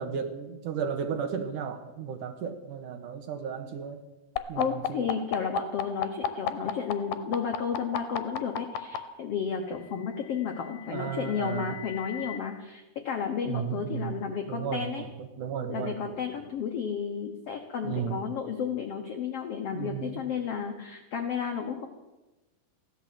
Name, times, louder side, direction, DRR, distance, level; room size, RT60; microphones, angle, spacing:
voice 1, 0.0-4.0 4.5-5.1 10.9-11.7 13.4-14.2 14.5-15.1 15.4-16.3 17.8-18.2 19.7-20.1, right 7 dB, 70° right, 7 dB, 2.4 m, -34 dB
sound 1, 4.4-9.0 10.1-12.4, left 10 dB, 90° left, 2.8 m, -33 dB
voice 2, 4.5-15.1 15.7-21.9, left 6 dB, 70° left, 5 dB, 1.4 m, -32 dB
15.5 x 11.5 x 7.6 m, 1.1 s
omnidirectional pair, 4.3 m